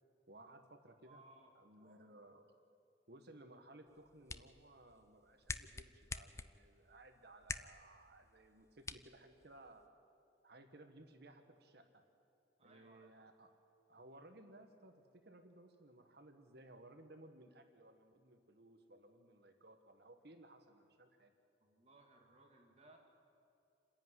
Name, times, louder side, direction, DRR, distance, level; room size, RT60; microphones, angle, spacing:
voice 1, 0.3-1.2 1.5-2.4 3.1-9.8 10.4-12.0 12.6-13.5 13.9-21.3, right 1 dB, 60° right, 6 dB, 1.4 m, -60 dB
voice 2, 1.1-2.0 12.6-13.1 21.6-23.0, right 2 dB, 35° right, 1 dB, 2.5 m, -64 dB
sound 1, 3.9-9.9, left 3 dB, 15° left, 0.5 m, -50 dB
28.0 x 10.5 x 9.7 m, 2.7 s
head